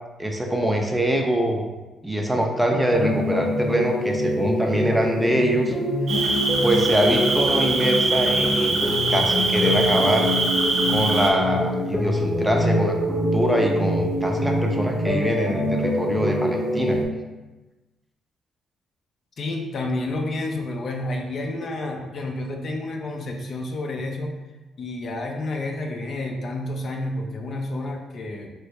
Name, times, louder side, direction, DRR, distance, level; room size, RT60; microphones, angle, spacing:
voice 1, 0.2-1.6 2.0-5.7 6.6-10.3 10.9-17.0, right 1 dB, 10° right, 1 dB, 0.5 m, -24 dB
sound 1, 2.9-17.1, equal, 25° left, 0.8 m, -25 dB
Cricket, 6.1-11.3, right 3 dB, 65° right, 0.6 m, -23 dB
voice 2, 19.4-24.3 24.8-28.5, left 2 dB, 50° left, 2 dB, 0.5 m, -30 dB
3.1 x 2.6 x 3.1 m, 1.1 s
cardioid pair, 90°, 0 cm